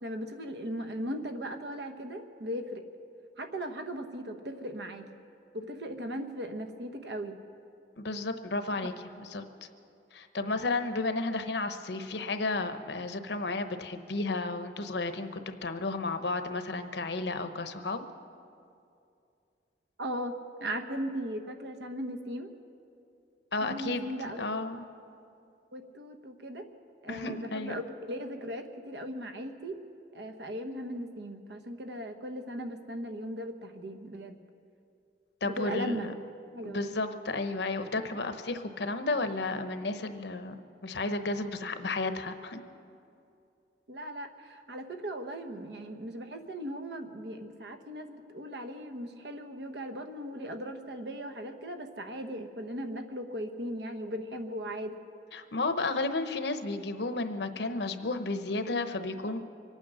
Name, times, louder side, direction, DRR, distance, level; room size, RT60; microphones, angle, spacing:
voice 1, 0.0-2.8 3.4-5.1 5.5-7.4 20.0-20.3 20.6-22.5 23.6-24.4 25.7-26.7 27.0-29.8 30.1-34.4 35.4-36.1 36.5-36.8 43.9-55.0, equal, 65° right, 6 dB, 1.1 m, -38 dB
voice 2, 8.0-8.9 9.3-9.7 10.1-18.0 23.5-24.8 27.1-27.7 35.4-36.1 36.6-40.6 40.8-42.6 55.3-59.4, left 3 dB, 70° left, 9 dB, 0.9 m, -33 dB
24.5 x 9.1 x 6.2 m, 2.5 s
head